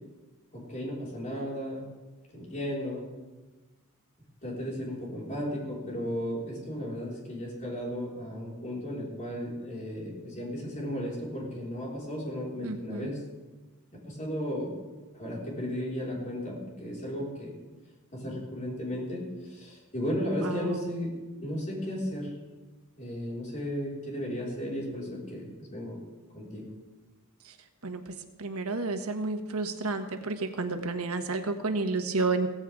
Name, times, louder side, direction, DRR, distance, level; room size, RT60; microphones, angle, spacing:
voice 1, 0.5-1.8 2.3-3.1 4.4-13.2 14.1-14.7 15.1-17.5 18.1-22.4 23.0-26.0 26.3-26.7, equal, 35° left, -4 dB, 5.1 m, -35 dB
voice 2, 12.6-13.1 20.4-20.9 27.4-27.5 27.8-32.5, right 3 dB, 85° right, 6 dB, 1.4 m, -31 dB
16.5 x 15.0 x 3.7 m, 1.2 s
head